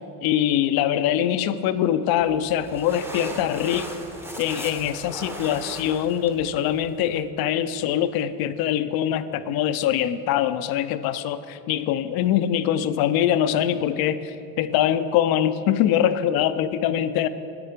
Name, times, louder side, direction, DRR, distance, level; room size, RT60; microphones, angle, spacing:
voice 1, 0.2-3.9 4.4-17.3, left 10 dB, 50° left, 13 dB, 0.5 m, -23 dB
sound 1, 2.2-7.2, equal, 5° right, 0.8 m, -38 dB
9.6 x 8.5 x 5.0 m, 2.9 s
supercardioid pair, 105°, 49 cm